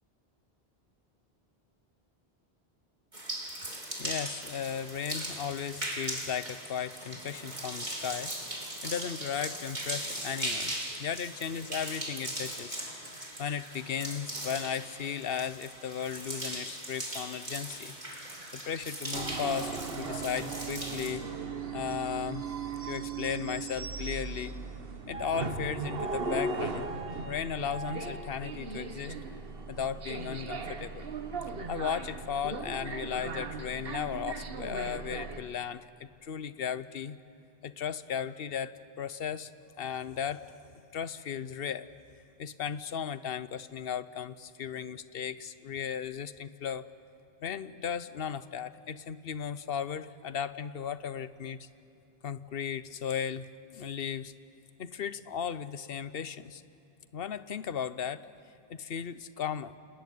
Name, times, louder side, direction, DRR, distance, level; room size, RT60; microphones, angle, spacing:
sound 1, 3.1-21.1, right 1 dB, 45° right, 3.8 m, -39 dB
voice 1, 4.0-8.3 8.8-10.7 11.0-12.8 13.4-17.9 18.2-21.3 21.7-22.4 22.9-24.6 25.1-27.0 27.2-29.2 29.7-31.1 31.7-37.2 37.6-39.5 39.8-40.5 40.9-41.9 42.4-46.8 47.4-51.7 52.2-54.3 54.8-56.6 57.1-58.3 58.7-59.7, left 8 dB, 70° left, 14 dB, 1.0 m, -36 dB
sound 2, 19.1-35.4, right 4 dB, 65° right, 1.5 m, -37 dB
28.5 x 19.5 x 9.4 m, 2.9 s
omnidirectional pair, 1.0 m